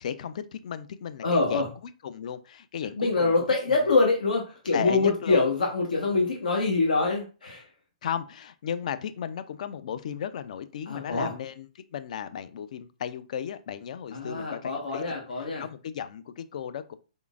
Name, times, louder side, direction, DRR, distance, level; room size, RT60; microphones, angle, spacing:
voice 1, 0.0-1.7 2.0-3.3 3.7-3.8 4.7-5.5 8.0-15.0 15.6-16.9, left 8 dB, 60° left, 0.4 m, -35 dB
voice 2, 1.2-1.6 3.0-7.6 10.9-11.3 14.1-15.6, left 3 dB, 90° left, 1.1 m, -25 dB
4.0 x 3.6 x 2.4 m
hypercardioid pair, 145°, 4 cm